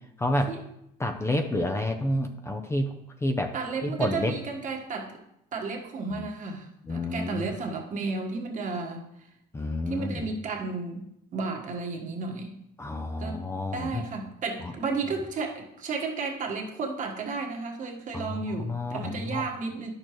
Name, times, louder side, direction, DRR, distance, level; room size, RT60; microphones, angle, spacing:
voice 1, 0.2-0.5 1.0-2.9 3.2-3.5 3.8-4.3 6.1-6.3 6.9-7.5 9.5-10.2 12.8-14.0 14.6-14.7 18.1-19.5, left 1 dB, 15° left, 5 dB, 0.6 m, -29 dB
voice 2, 3.5-5.2 5.5-9.1 9.9-11.1 11.3-12.6 13.2-13.5 13.7-19.9, right 4 dB, 50° right, 1 dB, 1.5 m, -33 dB
10.0 x 6.6 x 3.1 m, 0.81 s
cardioid pair, 110°, 17 cm